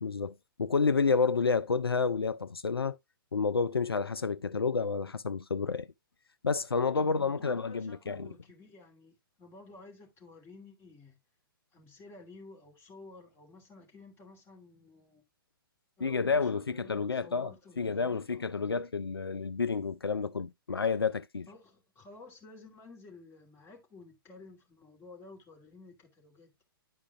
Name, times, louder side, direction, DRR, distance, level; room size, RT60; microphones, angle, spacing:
voice 1, 0.0-3.0 3.3-5.9 6.4-8.3 16.0-21.5, left 4 dB, 80° left, 0.4 m, -30 dB
voice 2, 7.0-11.2 11.7-15.2 16.0-18.8 21.5-26.6, left 3 dB, 20° left, 2.6 m, -53 dB
11.0 x 4.8 x 2.3 m
figure-of-eight pair, 115°, 12 cm